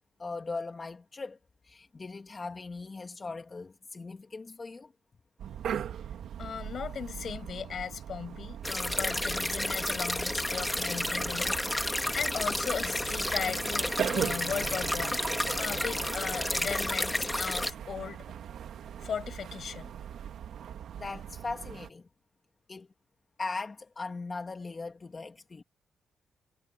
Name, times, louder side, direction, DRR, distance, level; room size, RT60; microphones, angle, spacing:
voice 1, 0.2-1.4 1.6-4.9 21.0-22.1 22.7-22.9 23.4-25.6, left 3 dB, 30° left, 2.3 m, -39 dB
sound 1, 5.4-21.9, right 9 dB, 80° right, 2.0 m, -39 dB
voice 2, 6.4-18.2 19.0-19.9, left 7 dB, 60° left, 5.9 m, -37 dB
sound 2, 8.6-17.7, left 1 dB, 10° left, 2.1 m, -31 dB
cardioid pair, 100°, 0 cm